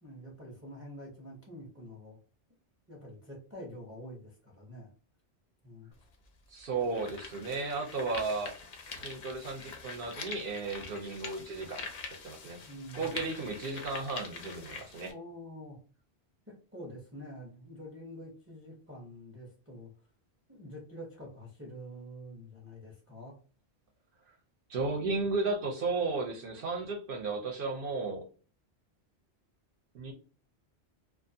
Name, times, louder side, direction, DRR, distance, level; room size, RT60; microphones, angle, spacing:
voice 1, 0.0-2.2 2.9-4.9 5.6-5.9 12.7-13.2 15.1-15.8 16.5-19.9 20.5-23.3, equal, 15° right, -3 dB, 0.5 m, -47 dB
sound 1, 5.9-6.0 6.6-15.1, left 4 dB, 55° left, 0.5 m, -44 dB
voice 2, 6.5-8.6 9.0-11.8 12.2-12.6 12.9-15.1 24.7-28.3 29.9-30.1, right 3 dB, 60° right, 2 dB, 0.7 m, -34 dB
2.4 x 2.2 x 2.6 m, 0.38 s
omnidirectional pair, 1.1 m